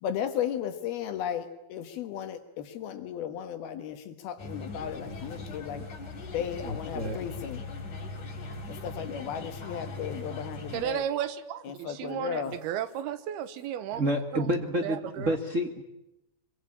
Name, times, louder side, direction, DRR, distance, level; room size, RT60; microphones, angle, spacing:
voice 1, 0.0-5.9 6.3-7.6 8.7-11.0 11.6-12.6, left 9 dB, 75° left, 8 dB, 3.2 m, -35 dB
sound 1, 4.4-10.8, left 3 dB, 50° left, 5.2 m, -40 dB
voice 2, 6.6-7.2 13.9-15.8, equal, 45° right, 4 dB, 1.0 m, -29 dB
voice 3, 10.7-14.0 14.3-14.5 14.8-15.4, right 10 dB, 75° right, 13 dB, 3.1 m, -34 dB
24.5 x 24.0 x 8.7 m, 0.90 s
omnidirectional pair, 4.6 m